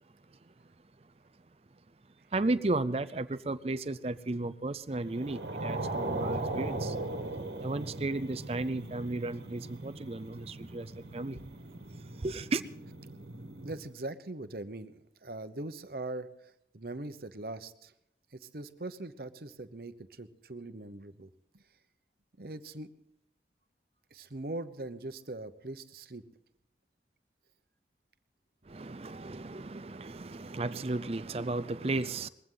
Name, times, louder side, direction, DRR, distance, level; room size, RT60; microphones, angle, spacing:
voice 1, 2.3-7.0 7.6-11.4 12.2-12.6 28.7-32.3, right 2 dB, 35° right, 0.5 m, -34 dB
sound 1, 5.1-13.8, right 2 dB, 75° right, 1.5 m, -39 dB
voice 2, 13.6-14.9 15.2-16.3 16.7-17.9 18.3-21.3 22.4-22.9 24.1-26.2, right 2 dB, 55° right, 1.0 m, -41 dB
21.5 x 15.5 x 3.9 m
head